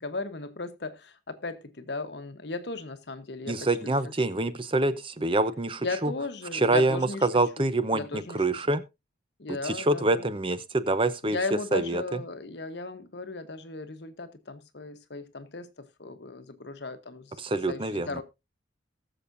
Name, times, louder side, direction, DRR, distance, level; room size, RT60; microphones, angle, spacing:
voice 1, 0.0-3.9 4.4-4.5 5.8-7.3 7.6-8.7 9.4-10.2 11.2-18.2, left 3 dB, 60° left, 1.1 m, -36 dB
voice 2, 3.5-6.1 6.5-8.8 9.6-11.4 11.7-12.0 17.4-18.2, right 2 dB, 25° right, 0.7 m, -26 dB
19.5 x 7.1 x 2.6 m
head